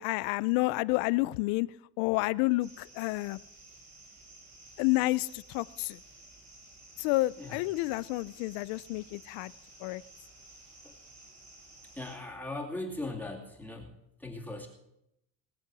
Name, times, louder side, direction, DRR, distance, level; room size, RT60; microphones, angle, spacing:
voice 1, 0.0-1.7 2.0-3.4 4.8-6.0 7.0-9.5 9.8-10.0, left 21 dB, 80° left, 20 dB, 0.6 m, -29 dB
sound 1, 2.6-12.2, right 2 dB, 50° right, 5.5 m, -54 dB
voice 2, 12.0-13.9 14.2-14.7, left 2 dB, 5° left, -1 dB, 2.5 m, -39 dB
21.0 x 7.6 x 6.1 m, 0.83 s
supercardioid pair, 105°, 36 cm